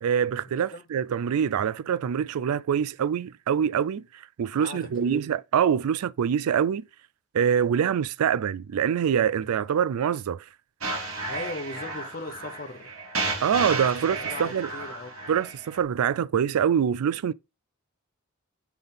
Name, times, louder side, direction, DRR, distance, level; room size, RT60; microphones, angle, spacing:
voice 1, 0.0-4.0 4.4-6.8 7.3-10.4 13.4-14.7 15.3-17.3, right 8 dB, 85° right, 0.4 m, -25 dB
voice 2, 0.5-0.8 4.5-5.3 11.3-12.9 14.1-15.2, left 2 dB, 40° left, 0.8 m, -38 dB
sound 1, 10.8-15.8, right 3 dB, 65° right, 1.9 m, -33 dB
6.0 x 3.4 x 5.4 m
head